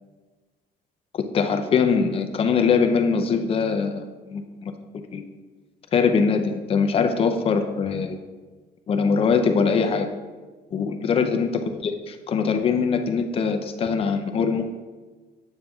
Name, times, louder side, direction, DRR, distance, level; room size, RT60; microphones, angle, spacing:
voice 1, 1.1-4.7 5.1-5.2 5.9-8.2 8.9-10.1 10.7-14.7, left 5 dB, 30° left, 6 dB, 0.5 m, -22 dB
8.8 x 6.8 x 2.3 m, 1.3 s
cardioid pair, 170°, 18 cm